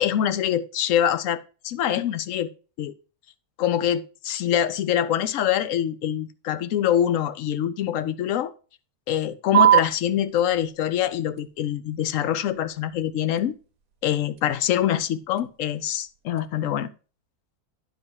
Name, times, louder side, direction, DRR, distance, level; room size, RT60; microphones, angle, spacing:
voice 1, 0.0-1.4 1.6-2.5 2.8-2.9 3.6-8.5 9.1-13.5 14.0-16.9, left 10 dB, 65° left, 0.9 m, -24 dB
sound 1, 9.5-16.5, right 11 dB, 75° right, 1.3 m, -27 dB
11.0 x 3.9 x 4.6 m
omnidirectional pair, 1.6 m